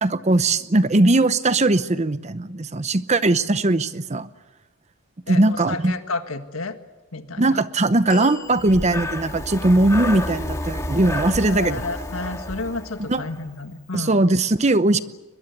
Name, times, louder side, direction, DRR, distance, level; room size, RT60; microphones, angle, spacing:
voice 1, 0.0-4.3 5.3-5.9 7.4-11.8 13.1-13.2 13.9-15.0, right 2 dB, 30° right, 13 dB, 0.8 m, -19 dB
voice 2, 5.3-6.8 7.1-7.6 11.5-14.2, left 3 dB, 80° left, 8 dB, 1.7 m, -31 dB
sound 1, 8.1-9.5 10.2-10.3, left 4 dB, 40° left, 4.5 m, -36 dB
Breathing, 8.5-13.5, left 1 dB, 15° left, 2.0 m, -30 dB
22.5 x 22.0 x 8.2 m, 1.1 s
head